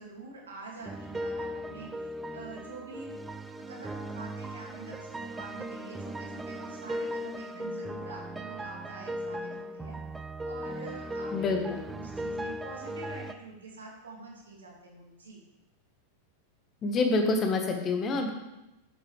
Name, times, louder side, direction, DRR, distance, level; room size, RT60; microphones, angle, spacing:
voice 1, 0.0-3.1 3.7-10.0 10.4-15.4, right 3 dB, 70° right, -1 dB, 2.3 m, -46 dB
sound 1, 0.8-13.3, equal, 10° right, 0.4 m, -38 dB
voice 2, 11.3-11.8 16.8-18.3, left 3 dB, 25° left, 4 dB, 1.4 m, -27 dB
10.0 x 7.5 x 3.3 m, 0.96 s
figure-of-eight pair, 90°, 0 cm